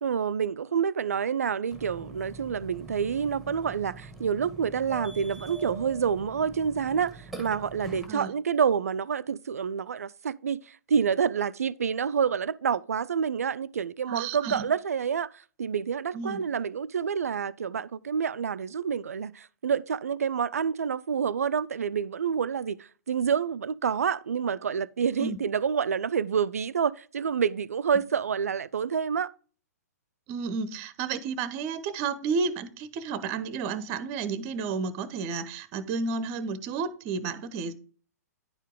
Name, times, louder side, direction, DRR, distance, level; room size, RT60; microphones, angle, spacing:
voice 1, 0.0-10.6 10.9-15.3 15.6-22.8 23.1-29.3, right 7 dB, 65° right, 0.4 m, -28 dB
Burping eructation, 1.7-8.1, right 2 dB, ahead, 1.3 m, -44 dB
voice 2, 14.1-14.6 16.1-16.4 25.2-25.4 30.3-37.7, right 5 dB, 30° right, 0.8 m, -32 dB
10.0 x 4.6 x 3.7 m
figure-of-eight pair, 120°, 9 cm